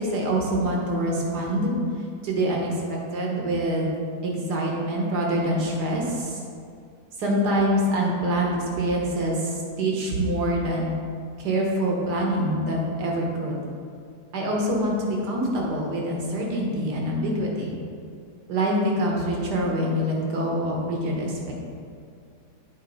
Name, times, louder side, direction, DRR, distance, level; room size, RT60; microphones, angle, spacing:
voice 1, 0.0-1.7 2.2-3.9 4.2-6.4 7.2-10.9 11.4-13.6 14.3-17.8 18.5-21.5, right 1 dB, 70° right, -1 dB, 1.7 m, -25 dB
8.9 x 4.1 x 4.0 m, 2.3 s
omnidirectional pair, 1.8 m